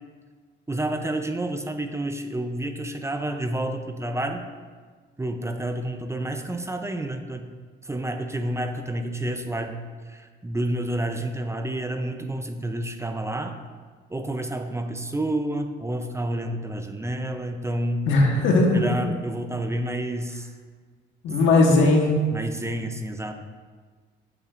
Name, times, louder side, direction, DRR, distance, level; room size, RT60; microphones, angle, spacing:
voice 1, 0.7-4.4 5.2-7.5 7.8-9.8 10.1-13.6 14.1-18.1 18.7-20.5 21.8-21.9 22.3-23.3, right 1 dB, 15° right, 6 dB, 0.5 m, -29 dB
voice 2, 18.1-18.8 21.2-22.1, left 2 dB, 85° left, 0 dB, 1.3 m, -18 dB
8.3 x 6.9 x 2.5 m, 1.5 s
cardioid pair, 90°, 20 cm